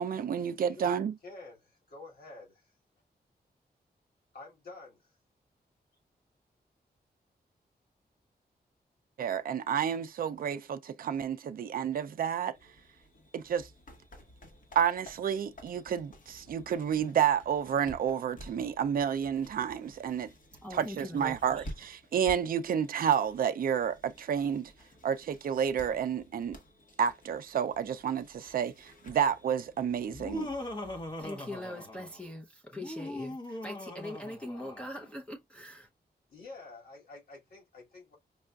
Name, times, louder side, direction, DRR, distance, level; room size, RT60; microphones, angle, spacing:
voice 1, 0.0-1.1 9.2-12.6 13.3-13.7 14.8-20.3 20.7-24.7 25.0-26.6 27.0-30.5, right 8 dB, 60° right, 0.4 m, -30 dB
voice 2, 0.6-2.8 4.3-5.2 36.3-38.2, left 3 dB, 70° left, 2.4 m, -49 dB
sound 1, 12.5-31.3, equal, 55° left, 1.3 m, -52 dB
voice 3, 20.6-21.7 31.2-35.9, left 1 dB, 5° left, 0.7 m, -42 dB
Laughter, 30.1-32.3 32.7-35.1, left 1 dB, 25° left, 1.0 m, -40 dB
5.3 x 2.4 x 2.3 m
wide cardioid pair, 160°, 17 cm